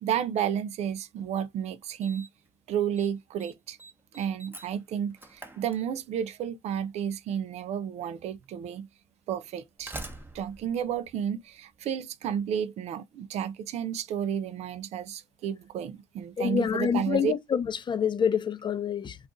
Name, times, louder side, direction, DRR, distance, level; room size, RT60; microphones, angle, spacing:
voice 1, 0.0-2.3 2.7-3.8 4.1-8.9 9.3-9.9 10.3-17.3, right 9 dB, 60° right, 0.4 m, -31 dB
Slam, 1.2-1.3 2.0-2.5 2.7-3.1 3.4-6.3 7.4-7.5 8.4-8.5 9.5-11.8, right 2 dB, 15° right, 0.9 m, -45 dB
voice 2, 16.4-19.2, left 7 dB, 40° left, 0.6 m, -27 dB
2.4 x 2.3 x 3.8 m
supercardioid pair, 65°, 12 cm